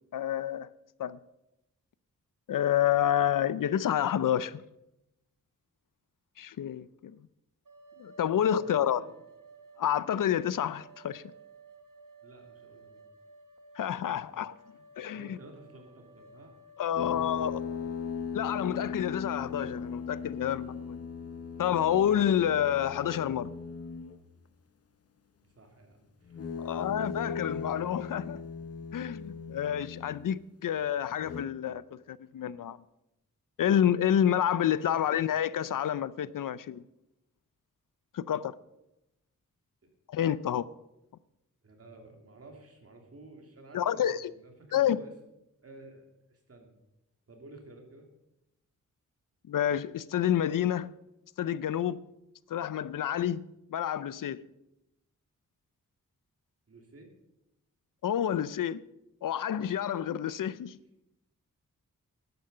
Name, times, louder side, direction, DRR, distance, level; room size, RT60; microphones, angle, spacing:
voice 1, 0.1-0.7 1.0-1.2 2.5-4.6 6.4-7.2 8.0-9.0 9.8-11.2 13.8-14.5 15.0-15.4 16.8-17.5 18.3-21.1 21.6-23.5 26.6-28.4 28.9-32.8 33.6-36.8 38.1-38.5 40.1-40.7 43.7-44.3 44.7-45.0 49.5-50.9 51.4-52.0 52.5-53.4 53.7-54.4 58.0-58.8 59.2-60.8, left 10 dB, 80° left, 0.5 m, -29 dB
sound 1, 7.7-17.4, right 3 dB, 75° right, 1.4 m, -55 dB
voice 2, 8.5-9.1 12.2-13.1 14.8-16.5 16.9-17.5 25.4-26.9 35.0-35.2 41.6-45.1 45.6-46.7 47.3-48.1 56.7-57.1, right 2 dB, 45° right, 2.6 m, -52 dB
sound 2, 17.0-24.3 26.3-30.4 31.1-31.5, left 6 dB, 50° left, 0.9 m, -38 dB
11.5 x 9.4 x 6.6 m
wide cardioid pair, 140°, 32 cm